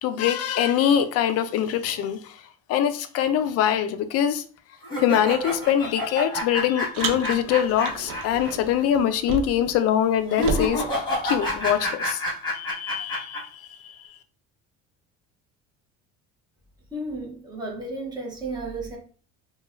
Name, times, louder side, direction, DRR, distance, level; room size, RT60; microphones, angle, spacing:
voice 1, 0.0-2.4 2.7-4.4 5.0-12.2 12.5-13.7, left 10 dB, 50° left, 0.4 m, -23 dB
sound 1, 4.8-8.5 8.8-8.9 10.3-13.4, left 1 dB, 15° left, 1.5 m, -28 dB
Car, 6.9-9.8 10.0-11.8, right 5 dB, 80° right, 0.7 m, -33 dB
voice 2, 16.9-19.0, right 2 dB, 15° right, 0.9 m, -33 dB
4.7 x 2.3 x 2.4 m
cardioid pair, 160°, 32 cm